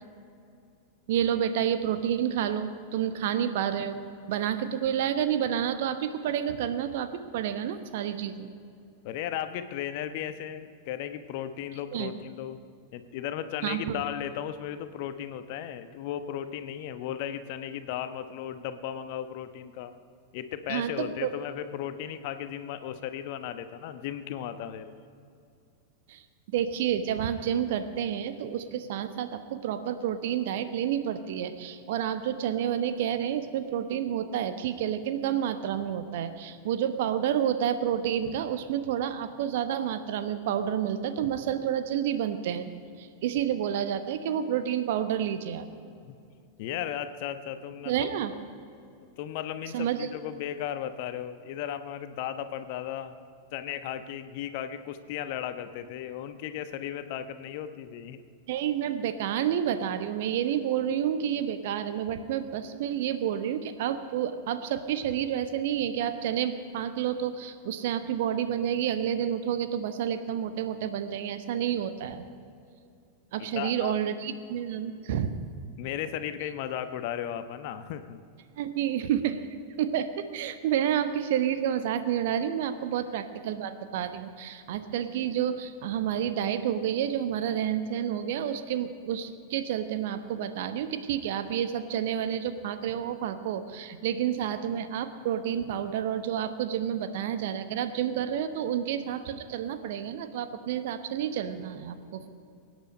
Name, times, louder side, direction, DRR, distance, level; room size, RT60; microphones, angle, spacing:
voice 1, 1.1-8.5 11.9-12.1 13.6-14.0 20.7-21.3 26.1-26.2 26.5-42.7 43.0-45.7 47.8-48.3 49.7-50.1 58.5-72.3 73.3-75.3 78.6-79.4 79.8-102.3, right 9 dB, 55° right, 10 dB, 1.0 m, -29 dB
voice 2, 9.0-12.6 12.9-19.9 20.3-24.9 46.1-46.2 46.6-48.1 49.2-53.1 53.5-58.2 73.4-73.9 75.8-78.2, left 10 dB, 50° left, 11 dB, 1.0 m, -35 dB
23.5 x 9.7 x 5.4 m, 2.5 s
figure-of-eight pair, 90°, 0 cm